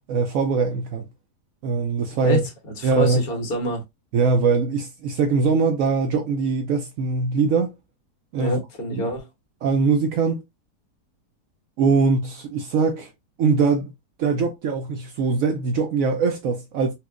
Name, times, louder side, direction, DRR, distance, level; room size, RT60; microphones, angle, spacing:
voice 1, 0.1-1.1 1.6-2.5 2.8-3.2 4.1-7.7 8.3-8.6 8.9-9.0 9.6-10.4 11.8-13.1 13.4-13.9 14.2-16.9, right 4 dB, 70° right, 0.8 m, -22 dB
voice 2, 2.2-3.8 8.4-9.3, equal, 60° left, 1.5 m, -27 dB
4.3 x 2.3 x 2.4 m
omnidirectional pair, 1.8 m